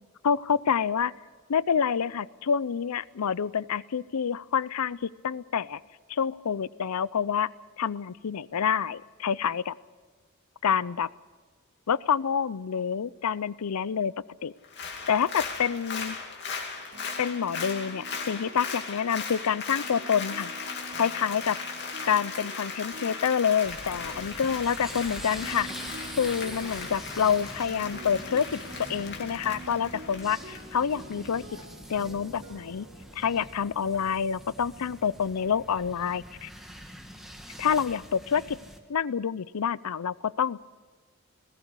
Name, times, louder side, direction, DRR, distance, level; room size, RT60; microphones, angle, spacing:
voice 1, 0.2-1.1 1.5-5.8 6.1-7.5 7.8-9.7 10.6-11.1 11.9-14.1 14.4-14.5 15.1-16.2 17.2-21.6 22.1-25.7 26.2-28.6 28.9-31.4 31.9-32.9 33.2-36.5 37.6-38.6 38.9-40.6, left 7 dB, 85° left, 20 dB, 0.5 m, -27 dB
Applause, 14.6-31.3 31.6-31.7, left 5 dB, 50° left, 2.7 m, -38 dB
sound 1, 16.9-33.6, right 2 dB, 60° right, 3.3 m, -47 dB
sound 2, 23.6-38.8, equal, ahead, 1.6 m, -44 dB
19.5 x 17.0 x 8.1 m, 1.4 s
head